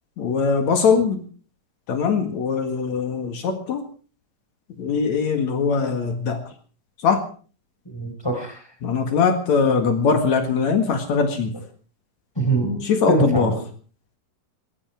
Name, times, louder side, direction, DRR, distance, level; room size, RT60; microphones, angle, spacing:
voice 1, 0.2-1.2 1.9-3.8 4.8-6.4 7.0-7.2 8.8-11.5 12.8-13.5, left 5 dB, 60° left, 7 dB, 2.9 m, -21 dB
voice 2, 7.9-8.6 12.4-13.6, right 2 dB, 5° left, 5 dB, 4.3 m, -24 dB
20.0 x 15.5 x 4.7 m, 0.40 s
omnidirectional pair, 3.8 m